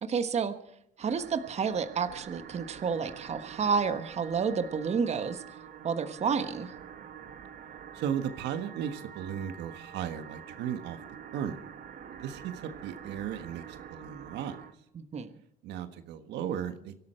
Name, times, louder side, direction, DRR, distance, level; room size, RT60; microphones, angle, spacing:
voice 1, 0.0-0.5 1.0-5.4 5.8-6.7 15.0-15.3, right 6 dB, 40° right, 9 dB, 1.3 m, -30 dB
sound 1, 1.0-14.7, right 8 dB, 55° right, 1.9 m, -47 dB
voice 2, 7.9-11.0 11.3-11.6 12.1-14.5 15.6-17.0, right 9 dB, 75° right, 9 dB, 1.5 m, -36 dB
24.0 x 12.5 x 4.5 m, 0.74 s
cardioid pair, 105°, 18 cm